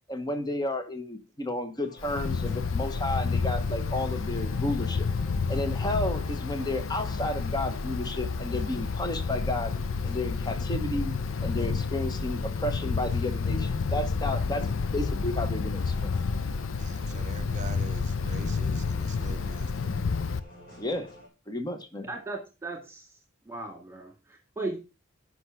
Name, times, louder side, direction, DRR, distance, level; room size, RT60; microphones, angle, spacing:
voice 1, 0.1-5.1 5.5-9.7 10.0-11.1 11.4-16.1 20.8-21.1 21.5-22.1, left 1 dB, 20° left, 1.0 m, -32 dB
sound 1, 1.8-21.3, equal, 50° left, 6.7 m, -50 dB
Wind, 2.0-20.4, left 4 dB, 80° left, 0.6 m, -30 dB
voice 2, 16.8-19.9, right 4 dB, 40° right, 0.6 m, -44 dB
voice 3, 22.1-23.1 23.5-24.8, right 2 dB, 15° right, 2.0 m, -37 dB
8.0 x 5.8 x 5.7 m
head